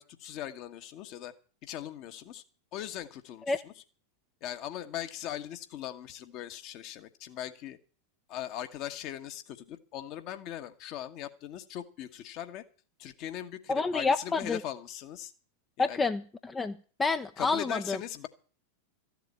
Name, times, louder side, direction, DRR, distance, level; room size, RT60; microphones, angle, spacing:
voice 1, 0.0-1.3 1.6-2.4 2.7-3.7 4.4-7.8 8.3-12.6 13.0-15.3 15.8-16.1 17.4-18.3, left 11 dB, 40° left, 7 dB, 1.4 m, -40 dB
voice 2, 13.7-14.6 15.8-18.0, left 4 dB, 15° left, 9 dB, 0.7 m, -29 dB
14.5 x 7.6 x 8.7 m, 0.40 s
figure-of-eight pair, 90°, 0 cm